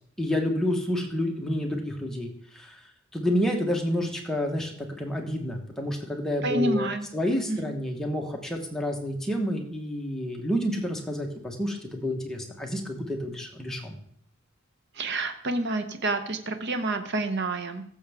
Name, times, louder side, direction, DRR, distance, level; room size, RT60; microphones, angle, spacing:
voice 1, 0.2-2.8 3.1-13.9, left 1 dB, ahead, 0 dB, 1.2 m, -29 dB
voice 2, 6.4-7.1 7.5-7.7 14.9-17.8, right 2 dB, 55° right, 8 dB, 0.9 m, -28 dB
14.5 x 7.1 x 3.6 m, 0.64 s
head